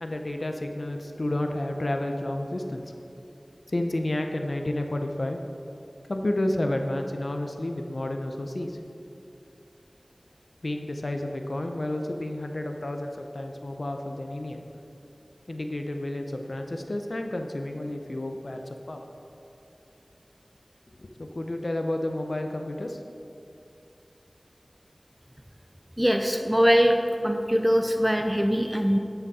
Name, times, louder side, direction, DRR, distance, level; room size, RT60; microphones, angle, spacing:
voice 1, 0.0-2.9 3.7-5.4 6.1-8.8 10.6-14.6 15.5-18.6 18.9-19.1 21.0-23.0, left 1 dB, 65° left, 4 dB, 0.7 m, -31 dB
voice 2, 26.0-27.0 27.2-29.0, equal, 10° right, 4 dB, 0.5 m, -22 dB
11.0 x 8.1 x 4.2 m, 2.8 s
wide cardioid pair, 50°, 0 cm